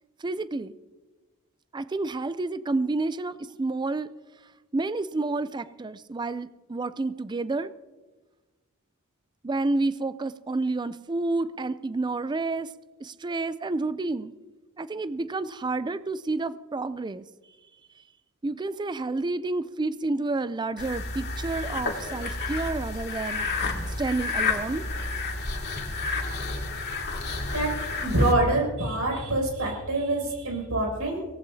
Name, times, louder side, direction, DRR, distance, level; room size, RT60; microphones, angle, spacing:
voice 1, 0.2-0.7 1.7-4.1 4.7-7.7 9.4-12.7 13.0-14.3 14.8-17.2 18.4-23.5 24.0-24.8, right 3 dB, 20° right, 14 dB, 0.4 m, -29 dB
sound 1, 20.8-28.3, left 3 dB, 50° left, 2.3 m, -31 dB
voice 2, 28.0-31.2, right 1 dB, 75° right, 0 dB, 6.6 m, -25 dB
23.5 x 17.5 x 2.8 m, 1.2 s
head